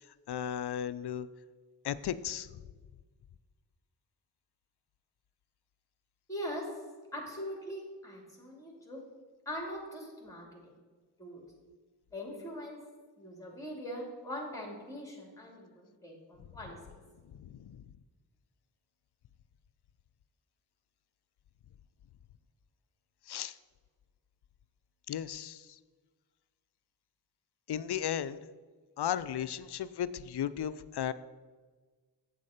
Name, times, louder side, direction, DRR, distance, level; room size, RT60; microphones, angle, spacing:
voice 1, 0.3-1.3 1.8-2.6 17.4-17.8 23.3-23.6 25.1-25.8 27.7-28.4 29.0-31.1, left 10 dB, 60° left, 16 dB, 0.5 m, -35 dB
voice 2, 6.3-6.7 7.1-9.0 9.4-10.7 11.2-11.4 12.1-12.8 13.2-16.8, equal, 5° left, 0 dB, 2.8 m, -41 dB
8.3 x 7.5 x 5.1 m, 1.4 s
cardioid pair, 40°, 44 cm